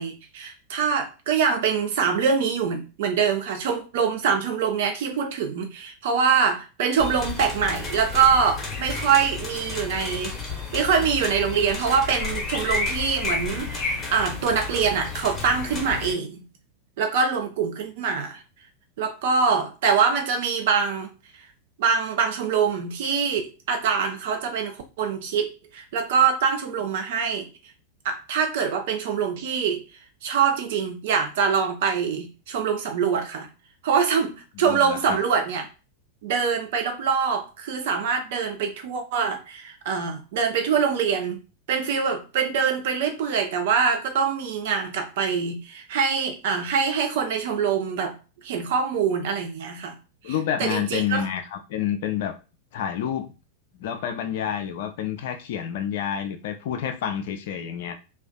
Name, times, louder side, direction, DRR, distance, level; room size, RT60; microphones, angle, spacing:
voice 1, 0.0-10.4 10.7-16.4 17.0-18.4 19.0-21.1 21.8-27.5 28.0-29.8 30.2-33.5 33.8-35.6 36.2-41.4 41.7-48.2 48.4-49.9 50.2-50.3 50.6-51.2, right 6 dB, 55° right, 4 dB, 0.5 m, -24 dB
sound 1, 7.0-16.1, left 4 dB, 20° left, 0.8 m, -31 dB
voice 2, 34.7-35.2 50.2-52.3 52.7-53.3 53.8-57.9, left 9 dB, 55° left, 7 dB, 0.4 m, -28 dB
2.4 x 2.3 x 2.2 m, 0.32 s
figure-of-eight pair, 90°, 0 cm